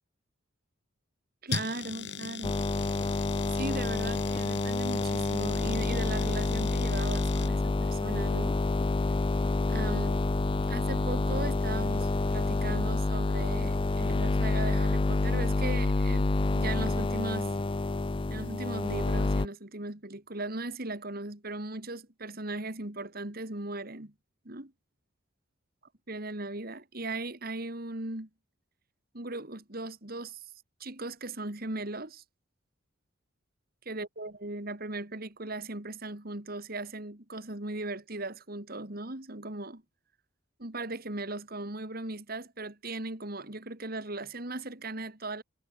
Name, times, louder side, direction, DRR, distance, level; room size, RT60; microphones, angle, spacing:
voice 1, 1.4-2.6 3.5-8.6 9.7-10.2 10.7-16.3 16.6-17.6 18.3-24.1 24.4-24.7 26.1-28.3 29.1-30.5 30.8-32.2 33.9-39.8 40.6-45.4, right 2 dB, 50° right, 2.6 m, -38 dB
sound 1, 1.5-7.5, left 5 dB, 60° left, 4.0 m, -39 dB
sound 2, 2.4-19.5, left 2 dB, 25° left, 0.4 m, -28 dB
head